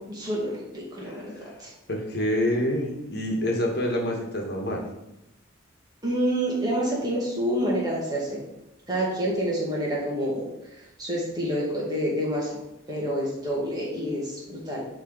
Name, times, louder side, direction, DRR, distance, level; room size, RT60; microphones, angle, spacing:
voice 1, 0.2-1.3 1.6-1.7 6.0-8.4 8.9-10.5 11.0-12.6 12.9-14.8, equal, 20° right, -5 dB, 2.1 m, -27 dB
voice 2, 1.9-4.8, left 1 dB, 55° left, 0 dB, 1.6 m, -27 dB
10.0 x 3.8 x 4.1 m, 0.87 s
head